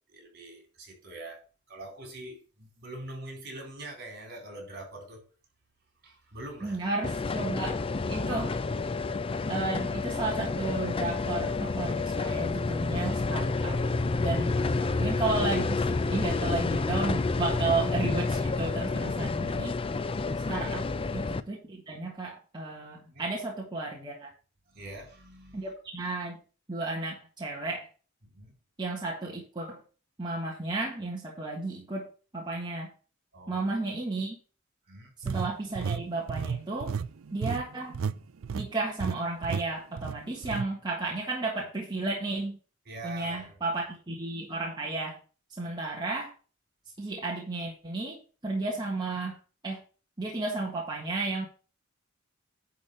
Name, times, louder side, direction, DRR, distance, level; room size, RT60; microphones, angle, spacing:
voice 1, 0.1-1.4 1.7-5.2 6.0-6.9 14.6-15.0 20.5-20.7 23.1-23.2 24.7-25.7 28.3-28.5 33.3-33.6 34.9-35.1 42.9-43.6, right 2 dB, 50° right, 4.1 m, -44 dB
voice 2, 6.6-7.8 8.1-8.6 9.5-13.8 14.2-14.6 15.0-19.8 20.5-20.8 21.1-24.3 25.5-26.4 26.7-27.9 28.8-29.8 30.2-32.1 32.3-32.9 33.5-34.4 35.2-36.9 37.3-38.0 38.5-42.6 43.0-45.2 45.6-46.3 47.0-49.4 49.6-49.8 50.2-51.5, right 2 dB, 20° right, 1.6 m, -33 dB
sound 1, 7.0-21.4, left 3 dB, 25° left, 0.5 m, -29 dB
sound 2, 35.2-38.2 38.4-38.7 39.0-39.1 39.4-39.6 40.0-40.7, right 6 dB, 80° right, 0.4 m, -32 dB
10.5 x 3.8 x 6.6 m
head